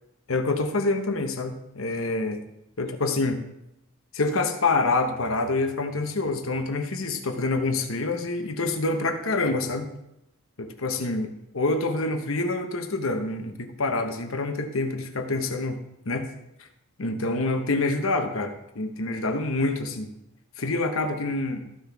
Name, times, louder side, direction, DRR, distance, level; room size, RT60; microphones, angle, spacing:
voice 1, 0.3-2.4 2.8-3.4 4.1-9.9 10.6-16.3 17.0-20.1 20.6-21.7, left 2 dB, 75° left, 6 dB, 1.1 m, -27 dB
14.0 x 5.9 x 3.5 m, 0.82 s
head